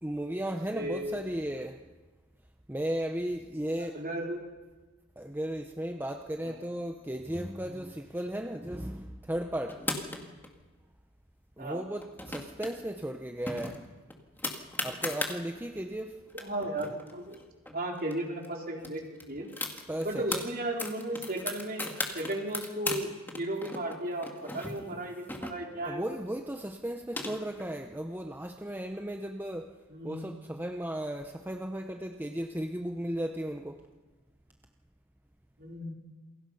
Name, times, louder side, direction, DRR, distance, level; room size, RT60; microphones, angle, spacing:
voice 1, 0.0-1.8 2.7-4.0 5.2-9.8 11.6-13.8 14.8-16.2 19.9-20.5 25.9-29.8 30.0-33.8, right 1 dB, 10° right, 4 dB, 0.9 m, -35 dB
voice 2, 0.7-1.4 3.9-4.4 6.4-6.5 11.6-11.8 16.3-17.4 17.7-19.0 19.3-19.5 20.0-26.0 29.9-30.3 35.6-35.9, right 1 dB, 45° right, 0 dB, 4.1 m, -35 dB
sound 1, 9.7-10.5 12.0-12.7 13.0-13.1 13.5-15.4 16.0-16.1 16.3-18.1 18.4-18.5 18.8-20.4 20.8-23.0 23.3-25.9 26.7-27.7, left 2 dB, 10° left, 2.3 m, -36 dB
28.5 x 22.0 x 5.7 m, 1.3 s
head